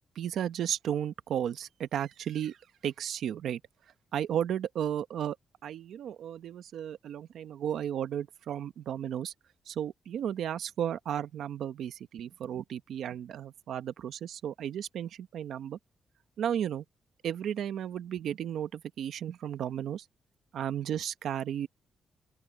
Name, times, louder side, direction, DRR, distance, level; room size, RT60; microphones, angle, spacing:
voice 1, 0.1-2.6 2.8-3.6 4.1-5.4 5.6-9.3 9.7-15.8 16.4-16.8 17.2-20.0 20.5-21.7, right 9 dB, 75° right, 1.0 m, -34 dB
open air
wide cardioid pair, 165°, 0 cm